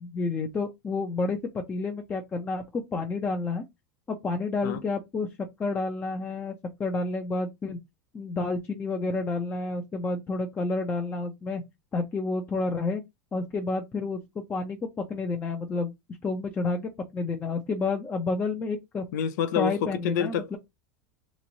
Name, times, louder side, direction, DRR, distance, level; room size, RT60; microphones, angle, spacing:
voice 1, 0.0-3.6 4.1-5.3 5.6-6.5 6.8-7.8 8.1-11.6 11.9-13.0 13.3-14.8 15.1-15.9 16.2-19.0 19.6-20.6, left 3 dB, 20° left, 0.6 m, -30 dB
voice 2, 19.1-20.6, left 8 dB, 75° left, 0.5 m, -28 dB
3.0 x 2.6 x 3.9 m
supercardioid pair, 135°, 10 cm